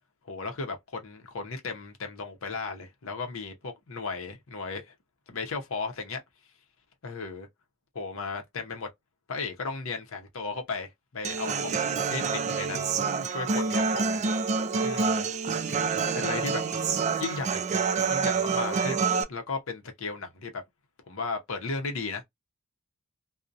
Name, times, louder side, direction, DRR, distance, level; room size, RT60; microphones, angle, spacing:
voice 1, 0.2-4.9 5.3-6.2 7.0-7.5 7.9-8.9 9.3-12.9 13.3-14.2 14.8-15.3 16.1-16.6 17.2-17.6 18.1-20.6 21.1-22.2, left 4 dB, 65° left, 0.7 m, -35 dB
Human voice / Acoustic guitar, 11.2-19.2, right 5 dB, 30° right, 0.3 m, -27 dB
2.6 x 2.1 x 2.4 m
head